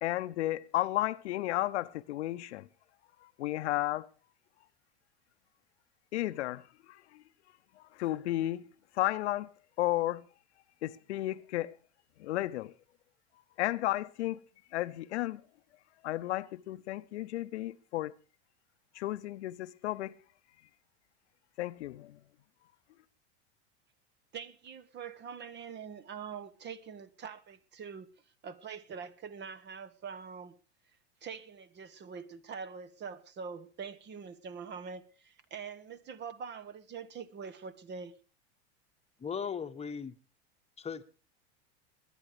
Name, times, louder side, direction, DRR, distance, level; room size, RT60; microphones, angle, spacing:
voice 1, 0.0-2.7 3.2-4.1 6.1-6.6 6.9-7.2 7.8-8.7 8.9-9.5 9.8-10.2 10.8-11.8 12.2-12.7 13.6-14.4 14.7-15.4 16.0-18.1 18.9-20.1 21.6-22.2, left 15 dB, 80° left, 0.9 m, -33 dB
voice 2, 24.3-28.1 28.4-30.6 31.2-38.1, right 6 dB, 30° right, 1.2 m, -44 dB
voice 3, 39.2-40.1 40.8-41.0, left 6 dB, 20° left, 1.2 m, -37 dB
20.5 x 10.5 x 5.0 m
hypercardioid pair, 105°, 34 cm